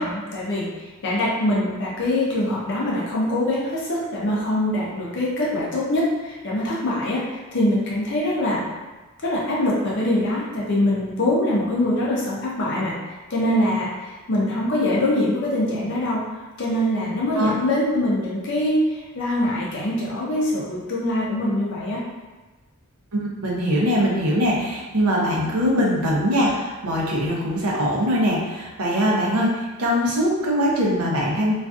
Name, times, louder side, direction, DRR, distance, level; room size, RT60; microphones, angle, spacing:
voice 1, 0.0-8.6 9.2-13.0 13.3-16.2 16.6-22.0, left 1 dB, 55° left, -5 dB, 0.5 m, -23 dB
voice 2, 23.1-31.5, equal, 80° right, -3 dB, 0.6 m, -22 dB
2.4 x 2.3 x 2.3 m, 1.2 s
head